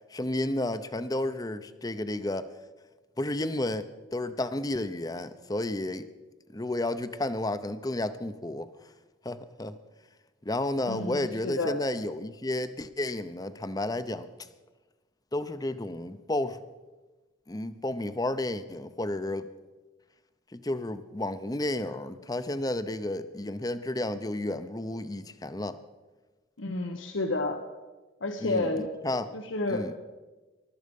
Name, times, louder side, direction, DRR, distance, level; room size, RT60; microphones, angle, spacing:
voice 1, 0.1-2.5 3.2-6.1 6.5-8.7 9.2-9.8 10.4-14.3 15.3-16.6 17.5-19.5 20.5-25.8 28.4-28.7 29.0-29.3 29.7-29.9, left 1 dB, 20° left, 12 dB, 0.7 m, -32 dB
voice 2, 10.9-11.8 26.6-27.6 28.2-28.9 29.3-29.8, left 2 dB, 85° left, 5 dB, 1.1 m, -30 dB
20.0 x 13.0 x 5.4 m, 1.2 s
head